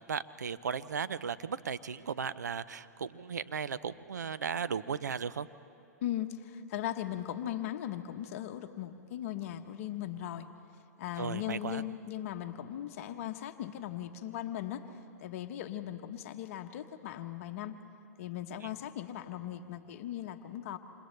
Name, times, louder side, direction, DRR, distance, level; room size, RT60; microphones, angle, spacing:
voice 1, 0.0-5.5 11.2-11.8 18.6-18.7, right 6 dB, 80° right, 14 dB, 0.6 m, -36 dB
voice 2, 6.0-10.5 11.0-17.8 18.2-20.8, left 11 dB, 55° left, 7 dB, 1.0 m, -38 dB
29.0 x 27.0 x 3.3 m, 2.7 s
hypercardioid pair, 110°, 9 cm